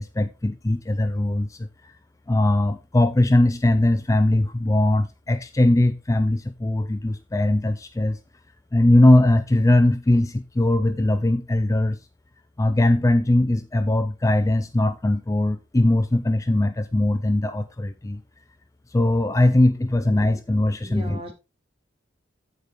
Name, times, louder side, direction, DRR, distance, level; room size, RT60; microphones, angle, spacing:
voice 1, 0.0-1.9 2.3-8.2 8.7-12.0 12.6-18.2 18.9-21.3, left 1 dB, 15° left, 0.4 m, -20 dB
voice 2, 20.8-21.3, equal, 30° right, 2.6 m, -38 dB
14.5 x 5.2 x 3.0 m
head